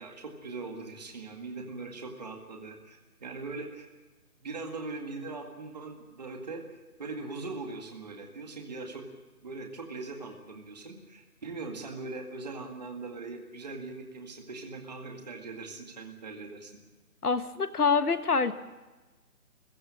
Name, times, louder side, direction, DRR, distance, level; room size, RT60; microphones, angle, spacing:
voice 1, 0.0-3.9 4.4-9.0 9.4-16.8, right 3 dB, 30° right, 3 dB, 2.0 m, -41 dB
voice 2, 17.2-18.5, left 5 dB, 90° left, 10 dB, 1.7 m, -25 dB
28.0 x 16.0 x 7.6 m, 1.2 s
hypercardioid pair, 175°, 44 cm